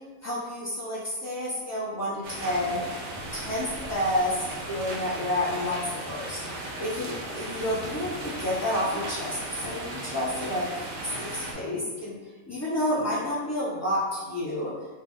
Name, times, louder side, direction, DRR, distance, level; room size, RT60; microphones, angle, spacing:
voice 1, 0.2-2.8 3.3-10.9 11.1-12.2 12.5-14.7, left 1 dB, 25° left, -9 dB, 0.3 m, -30 dB
sound 1, 2.2-11.5, right 1 dB, 65° right, 0.9 m, -36 dB
3.2 x 2.0 x 3.6 m, 1.3 s
omnidirectional pair, 1.5 m